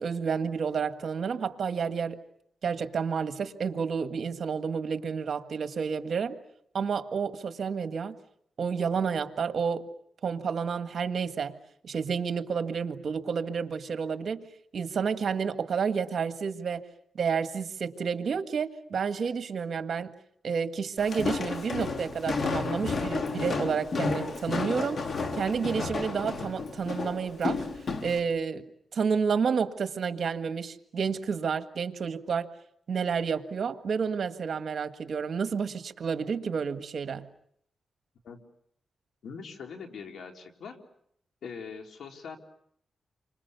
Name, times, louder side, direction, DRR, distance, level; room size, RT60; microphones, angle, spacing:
voice 1, 0.0-2.2 2.6-6.4 6.7-8.1 8.6-9.9 10.2-11.5 11.8-14.4 14.7-16.8 17.1-20.1 20.4-25.0 25.3-27.6 28.0-28.6 28.9-32.5 32.9-37.3, right 6 dB, 65° right, 1.7 m, -30 dB
Walk footsteps, 21.0-28.2, left 4 dB, 55° left, 3.5 m, -32 dB
voice 2, 39.2-40.8 41.4-42.4, left 5 dB, 80° left, 3.6 m, -42 dB
30.0 x 25.5 x 7.0 m
cardioid pair, 80°, 0 cm